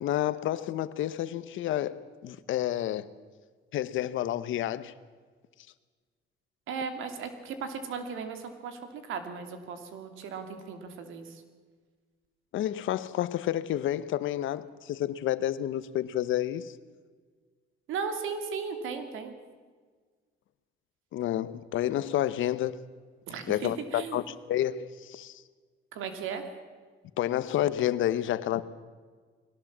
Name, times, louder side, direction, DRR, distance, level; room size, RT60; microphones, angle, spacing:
voice 1, 0.0-3.1 3.7-4.9 12.5-16.7 21.1-22.8 23.5-25.4 27.2-28.6, left 12 dB, 80° left, 1.0 m, -30 dB
voice 2, 6.7-11.4 17.9-19.3 23.3-24.2 25.9-26.4, right 5 dB, 85° right, 2.7 m, -36 dB
21.5 x 18.0 x 7.4 m
cardioid pair, 90°, 20 cm